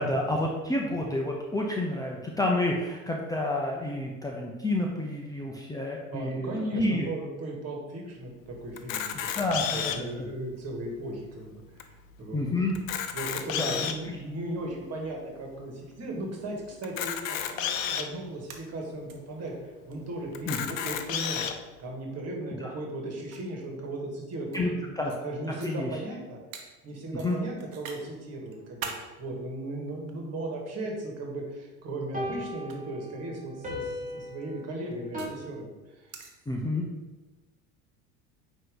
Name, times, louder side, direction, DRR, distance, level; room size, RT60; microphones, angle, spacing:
voice 1, 0.0-7.1 9.1-10.3 12.3-12.7 13.5-13.8 20.5-20.7 22.6-22.7 24.5-24.7 25.0-25.1 25.6-26.0 27.2-27.4 36.5-36.8, left 1 dB, 10° left, -1 dB, 0.7 m, -29 dB
voice 2, 6.1-9.2 9.7-12.4 13.1-21.5 21.8-25.0 25.2-26.4 26.8-36.1, right 1 dB, 40° right, 0 dB, 1.9 m, -37 dB
Camera, 8.8-10.1 10.8-10.9 11.1-11.2 11.8-11.9 12.7-14.1 14.7-14.8 16.8-18.1 18.8-18.9 19.1-19.2 20.3-21.5, left 8 dB, 70° left, 0.7 m, -31 dB
sound 1, 18.5-19.1 19.5-19.6 19.9-20.0 21.1-21.3 22.4-22.5 23.3-24.6 25.1-25.2 25.6-25.7 26.5-26.6 27.2-28.0 28.4-29.0 29.9-30.6 31.7-31.9 32.6-32.7 34.1-35.4 36.1-36.3, right 6 dB, 70° right, 1.0 m, -42 dB
sound 2, 32.1-35.3, left 1 dB, 20° right, 1.9 m, -38 dB
8.9 x 3.1 x 3.9 m, 1.1 s
figure-of-eight pair, 70°, 41 cm